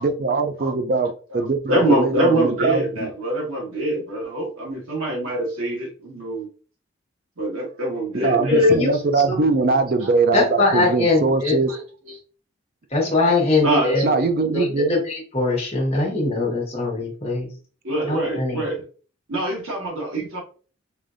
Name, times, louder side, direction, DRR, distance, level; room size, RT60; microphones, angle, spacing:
voice 1, 0.0-3.1 8.2-11.8 14.0-14.9, right 3 dB, 45° right, 0.4 m, -22 dB
voice 2, 0.5-1.0 1.3-6.5 7.4-9.0 10.0-10.1 10.6-10.7 11.4-11.8 12.0-12.2 13.6-14.2 14.5-14.7 17.8-18.8 19.3-20.4, right 1 dB, 90° right, 1.5 m, -25 dB
voice 3, 8.5-8.9 9.3-9.4 10.3-11.5 12.9-14.1 14.5-17.5 18.0-18.6, left 3 dB, 30° left, 1.3 m, -21 dB
4.9 x 2.7 x 2.5 m
head